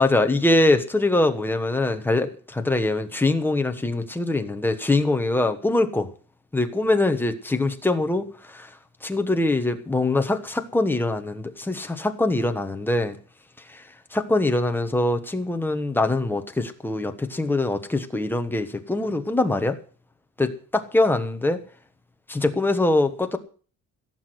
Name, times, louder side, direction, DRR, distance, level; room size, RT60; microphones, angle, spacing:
voice 1, 0.0-6.1 6.5-8.7 9.0-13.2 14.1-19.8 20.4-21.6 22.3-23.4, left 2 dB, 5° left, 6 dB, 1.1 m, -23 dB
16.5 x 8.1 x 7.8 m, 0.41 s
cardioid pair, 175°, 33 cm